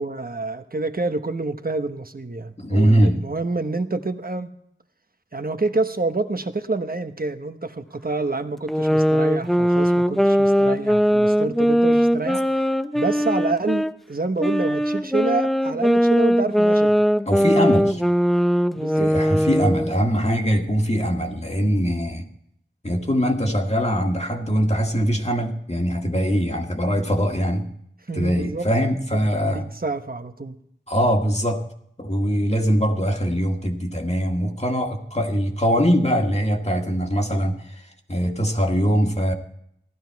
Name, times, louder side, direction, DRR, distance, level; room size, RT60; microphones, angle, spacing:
voice 1, 0.0-4.5 5.3-12.7 12.9-16.9 18.8-19.1 28.1-28.7 29.2-30.6, right 3 dB, 45° right, 9 dB, 1.1 m, -28 dB
voice 2, 2.6-3.2 17.3-18.0 19.0-22.3 22.8-27.7 28.1-29.7 30.9-31.6 32.0-39.3, equal, 30° left, 2 dB, 1.8 m, -22 dB
sound 1, 8.7-13.9 14.4-20.0, equal, ahead, 0.6 m, -20 dB
15.5 x 12.0 x 4.7 m, 0.72 s
wide cardioid pair, 50°, 20 cm